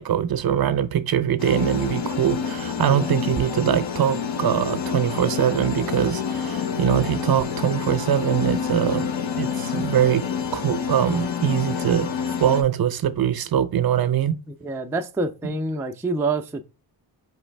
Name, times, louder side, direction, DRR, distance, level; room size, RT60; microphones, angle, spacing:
voice 1, 0.0-9.1 9.4-10.2 10.5-14.3, right 9 dB, 55° right, 0.6 m, -22 dB
sound 1, 1.4-12.6, left 7 dB, 80° left, 0.9 m, -28 dB
voice 2, 2.8-3.1 14.6-16.6, right 3 dB, 5° right, 0.3 m, -27 dB
4.8 x 3.2 x 3.3 m
wide cardioid pair, 120°, 45 cm